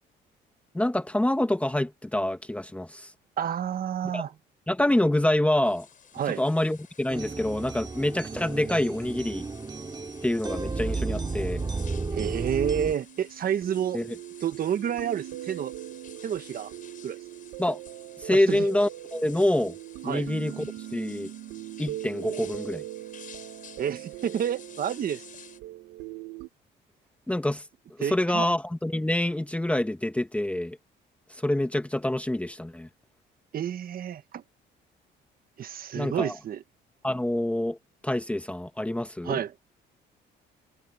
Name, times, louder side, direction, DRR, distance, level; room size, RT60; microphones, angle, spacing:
voice 1, 0.7-3.1 4.0-4.2 4.7-5.9 6.3-9.5 10.2-11.7 13.9-14.2 17.6-17.8 18.2-19.8 20.0-21.3 21.8-22.8 27.3-27.6 28.0-30.8 31.3-32.9 35.9-36.4 37.0-37.8 38.0-39.4, left 1 dB, 5° left, 1.4 m, -26 dB
voice 2, 3.4-4.3 6.2-6.4 12.1-14.0 14.4-15.7 16.2-16.7 17.0-17.2 18.3-18.6 20.0-20.2 23.8-25.2 28.0-28.5 33.5-34.4 35.6-36.6 39.2-39.5, right 9 dB, 50° right, 1.5 m, -29 dB
sound 1, 5.6-25.6, left 7 dB, 45° left, 6.2 m, -52 dB
sound 2, 7.1-12.9, right 3 dB, 20° right, 2.9 m, -33 dB
sound 3, 10.9-26.5, right 15 dB, 85° right, 1.5 m, -41 dB
cardioid pair, 105°, 19 cm